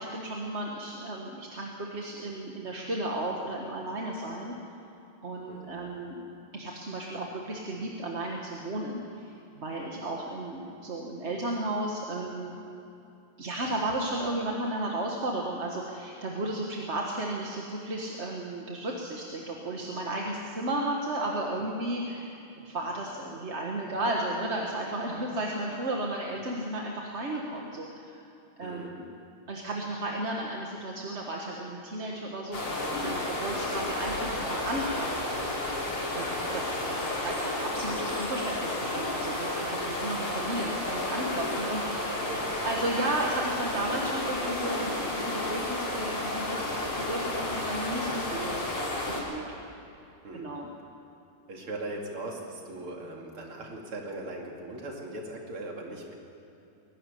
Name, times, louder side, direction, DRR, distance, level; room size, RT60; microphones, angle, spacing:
voice 1, 0.0-4.5 5.2-6.2 6.5-12.6 13.4-22.4 22.6-28.2 28.6-29.1 29.5-35.1 36.1-36.3 36.5-42.2 42.6-48.6 49.1-49.5 50.3-50.7, right 1 dB, 35° right, -1 dB, 1.6 m, -34 dB
voice 2, 5.5-5.8 28.6-28.9 36.1-36.4 42.1-42.6 50.2-50.5 51.5-56.2, right 2 dB, 85° right, 0 dB, 3.5 m, -39 dB
sound 1, 32.5-49.2, left 1 dB, 80° left, 4.4 m, -32 dB
22.0 x 12.0 x 10.0 m, 2.7 s
omnidirectional pair, 2.3 m